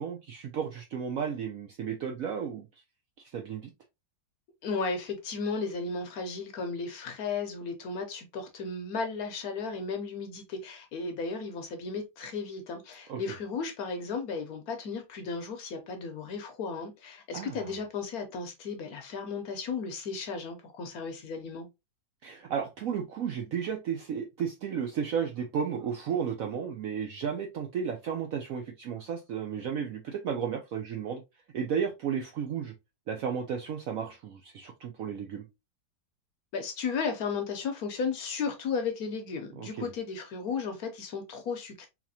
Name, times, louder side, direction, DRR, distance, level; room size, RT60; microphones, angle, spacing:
voice 1, 0.0-2.7 3.2-3.7 13.1-13.2 17.3-17.6 22.2-31.2 31.5-32.7 33.1-35.5 39.6-39.9, right 7 dB, 75° right, 0.8 m, -33 dB
voice 2, 4.6-21.7 36.5-41.9, left 5 dB, 65° left, 1.0 m, -34 dB
4.0 x 2.9 x 2.7 m
omnidirectional pair, 2.0 m